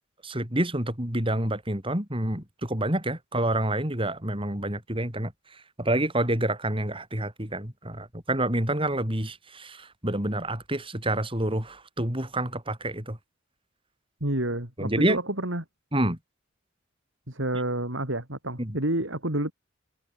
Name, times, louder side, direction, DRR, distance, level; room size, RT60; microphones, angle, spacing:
voice 1, 0.2-13.2 14.8-15.2 15.9-16.2 18.6-18.7, right 1 dB, 25° right, 6.3 m, -28 dB
voice 2, 14.2-15.6 17.3-19.5, right 1 dB, 75° right, 5.8 m, -29 dB
head